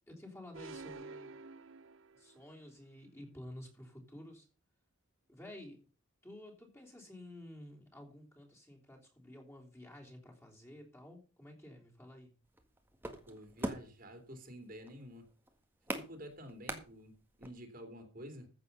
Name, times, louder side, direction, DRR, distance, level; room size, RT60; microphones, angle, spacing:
voice 1, 0.1-1.3 2.1-4.5 5.3-5.8 6.2-12.4, left 1 dB, 10° left, -1 dB, 3.4 m, -52 dB
sound 1, 0.5-2.5, right 3 dB, 65° right, 0.7 m, -49 dB
sound 2, 12.4-17.5, right 1 dB, 10° right, 1.7 m, -43 dB
voice 2, 13.3-15.3 15.9-17.1 17.4-18.5, equal, 40° right, 6 dB, 2.9 m, -50 dB
15.0 x 7.6 x 5.5 m, 0.35 s
head